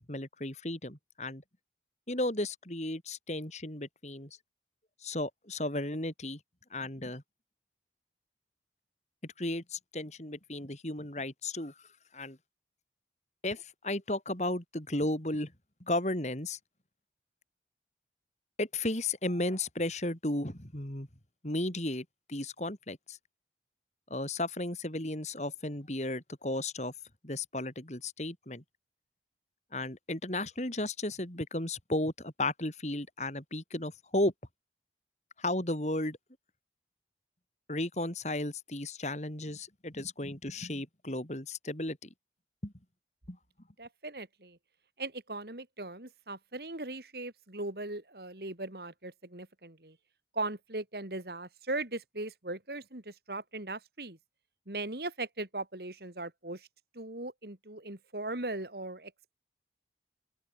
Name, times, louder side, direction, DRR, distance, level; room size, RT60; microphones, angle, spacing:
voice 1, 0.1-1.4 2.1-4.4 5.0-6.4 6.7-7.2 9.2-11.7 12.1-12.4 13.4-15.5 15.8-16.6 18.6-21.1 21.4-23.2 24.1-26.9 27.2-28.6 29.7-34.3 35.4-36.2 37.7-42.1 42.6-42.7 43.3-43.4, left 1 dB, 40° left, 3.7 m, -34 dB
voice 2, 43.8-44.6 45.0-50.0 50.3-54.2 54.7-56.7 56.9-59.3, right 2 dB, 65° right, 3.0 m, -39 dB
open air
head